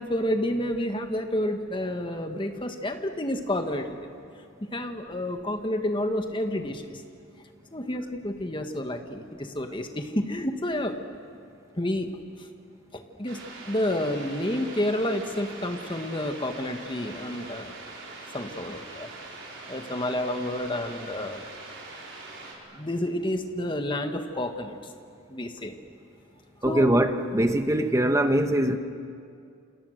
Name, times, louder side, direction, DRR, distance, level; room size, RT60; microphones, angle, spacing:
voice 1, 0.0-4.1 4.6-7.0 7.7-11.0 11.7-12.5 12.9-13.4 13.7-17.8 18.3-19.1 19.7-21.4 22.7-24.9 25.3-25.8 26.6-26.9, left 1 dB, 25° left, 6 dB, 1.5 m, -30 dB
sound 1, 13.3-22.5, right 3 dB, 60° right, 5.1 m, -43 dB
voice 2, 26.6-28.8, right 1 dB, 15° right, 7 dB, 1.2 m, -22 dB
29.0 x 27.0 x 6.6 m, 2.3 s
head